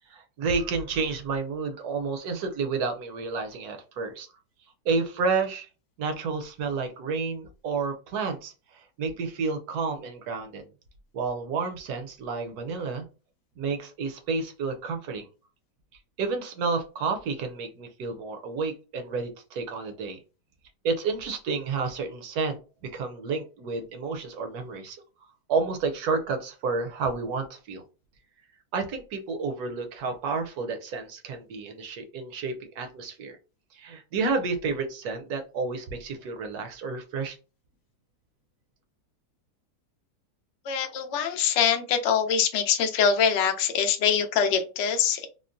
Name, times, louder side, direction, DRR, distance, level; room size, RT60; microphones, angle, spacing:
voice 1, 0.1-4.3 4.9-5.7 6.0-10.7 11.1-13.0 13.6-15.3 16.2-20.2 20.8-22.6 22.8-25.0 25.5-27.8 28.7-33.4 33.7-37.4, right 4 dB, 70° right, 5 dB, 1.0 m, -30 dB
voice 2, 40.6-45.3, left 7 dB, 90° left, 5 dB, 0.6 m, -24 dB
3.6 x 2.0 x 2.5 m, 0.32 s
omnidirectional pair, 1.9 m